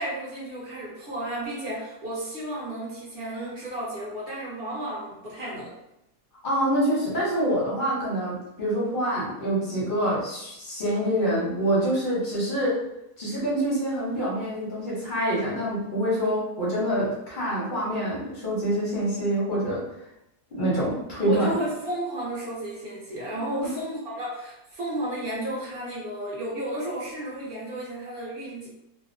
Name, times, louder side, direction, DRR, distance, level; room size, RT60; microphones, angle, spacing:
voice 1, 0.0-5.7 21.2-28.7, right 1 dB, 50° right, -6 dB, 0.7 m, -33 dB
voice 2, 6.4-12.8 13.2-19.8 20.5-21.5 23.4-23.7, right 1 dB, 40° left, -7 dB, 0.7 m, -26 dB
2.7 x 2.1 x 2.5 m, 0.85 s
omnidirectional pair, 1.7 m